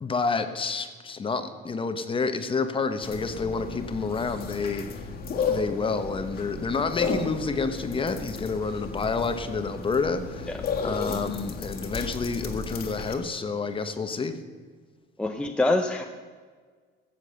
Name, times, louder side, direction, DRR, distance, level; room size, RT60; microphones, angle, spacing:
voice 1, 0.0-5.1 5.5-10.5 10.8-14.4, left 4 dB, 25° left, 9 dB, 1.0 m, -29 dB
sound 1, 3.0-13.1, left 4 dB, 50° left, 1.7 m, -33 dB
voice 2, 15.2-16.0, left 2 dB, 5° left, 3 dB, 0.7 m, -25 dB
15.0 x 7.6 x 6.7 m, 1.5 s
cardioid pair, 130°, 21 cm